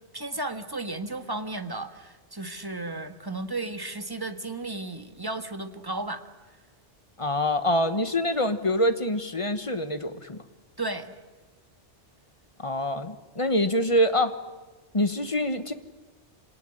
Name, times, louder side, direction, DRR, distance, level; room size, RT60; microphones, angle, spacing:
voice 1, 0.1-6.2 10.8-11.2, right 2 dB, 20° right, 8 dB, 1.5 m, -34 dB
voice 2, 7.2-10.4 12.6-14.3 14.9-15.7, left 1 dB, 30° left, 10 dB, 1.3 m, -25 dB
27.0 x 19.0 x 9.9 m, 1.2 s
omnidirectional pair, 1.2 m